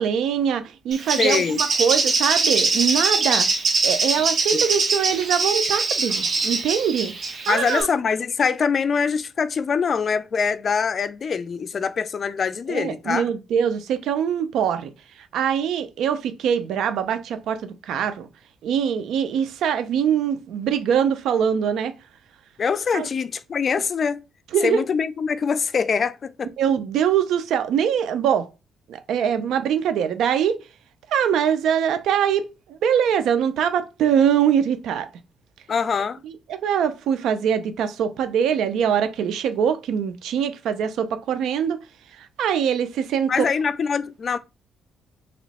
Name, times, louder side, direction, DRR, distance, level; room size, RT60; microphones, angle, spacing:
voice 1, 0.0-3.5 3.8-7.1 7.5-7.9 12.7-14.9 15.3-18.3 18.6-21.9 22.9-23.1 24.5-24.9 26.6-28.5 28.9-30.6 31.1-32.4 32.7-35.1 36.2-41.8 42.2-43.3, right 8 dB, 80° right, 0.5 m, -23 dB
Bird, 0.9-7.8, right 3 dB, 50° right, 1.2 m, -23 dB
voice 2, 1.2-1.6 4.5-4.6 7.5-13.3 22.6-24.2 24.6-26.5 35.7-36.2 43.3-44.4, left 6 dB, 45° left, 0.4 m, -23 dB
3.0 x 3.0 x 4.1 m
cardioid pair, 90°, 0 cm